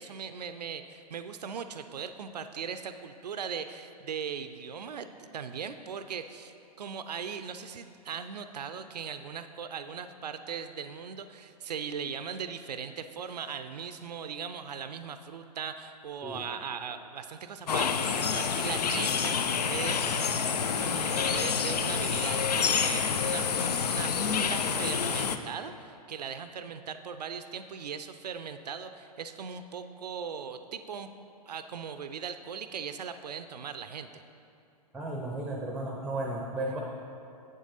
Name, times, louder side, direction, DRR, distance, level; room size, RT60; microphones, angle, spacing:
voice 1, 0.0-20.3 20.8-31.1 31.5-34.2, right 7 dB, 80° right, 10 dB, 0.4 m, -39 dB
sound 1, 17.7-25.4, left 6 dB, 75° left, 0.5 m, -28 dB
voice 2, 34.9-36.8, right 1 dB, 5° right, -1 dB, 0.7 m, -34 dB
8.3 x 7.4 x 4.0 m, 2.7 s
hypercardioid pair, 115°, 20 cm